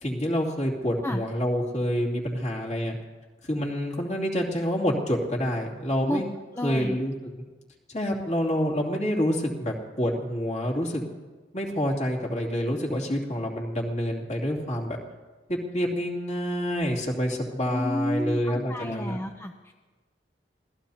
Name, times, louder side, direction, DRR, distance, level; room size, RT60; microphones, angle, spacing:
voice 1, 0.0-2.9 3.4-6.3 6.6-7.1 7.9-11.1 11.5-15.0 15.5-19.2, equal, 40° left, -1 dB, 2.9 m, -27 dB
voice 2, 6.6-7.0 17.7-19.7, equal, 15° left, 4 dB, 0.6 m, -31 dB
26.5 x 17.5 x 2.9 m, 1.3 s
head